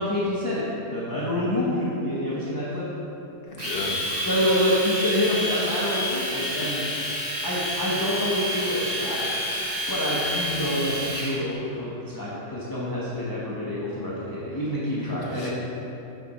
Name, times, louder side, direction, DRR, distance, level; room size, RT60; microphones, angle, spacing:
voice 1, 0.0-2.9 4.2-6.8 7.4-9.2 9.9-15.5, left 1 dB, 25° left, -8 dB, 0.5 m, -27 dB
voice 2, 3.4-4.5 15.3-15.5, left 3 dB, 45° left, -3 dB, 0.9 m, -35 dB
Domestic sounds home sounds, 3.6-11.3, equal, 25° right, 1.5 m, -29 dB
5.6 x 4.9 x 4.0 m, 2.9 s
omnidirectional pair, 1.6 m